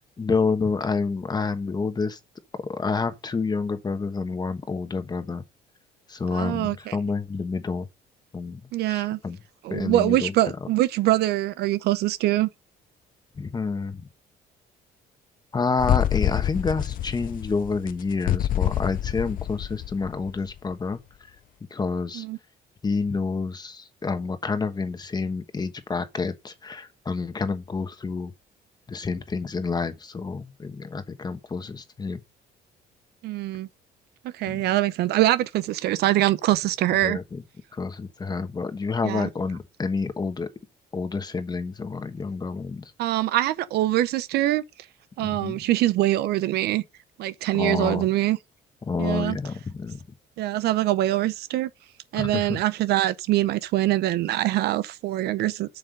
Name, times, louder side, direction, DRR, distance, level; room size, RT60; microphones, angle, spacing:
voice 1, 0.2-2.2 2.7-5.4 6.1-7.9 8.3-8.6 8.9-9.4 9.7-10.3 13.4-14.1 15.5-21.0 21.7-22.2 22.8-28.3 28.9-32.2 34.5-34.6 37.0-37.4 37.7-40.5 40.9-42.9 45.2-45.6 47.5-48.0 48.9-50.0 52.1-52.6, left 4 dB, 25° left, 1.3 m, -28 dB
voice 2, 6.3-7.0 8.7-9.2 9.6-12.5 22.1-22.4 33.2-33.7 34.3-37.2 39.0-39.3 43.0-44.6 45.2-46.8 47.2-48.4 49.0-49.4 50.4-51.7 52.1-55.8, right 15 dB, 75° right, 0.7 m, -24 dB
sound 1, 15.8-20.6, left 12 dB, 55° left, 0.6 m, -26 dB
7.7 x 6.7 x 5.2 m
cardioid pair, 110°, 17 cm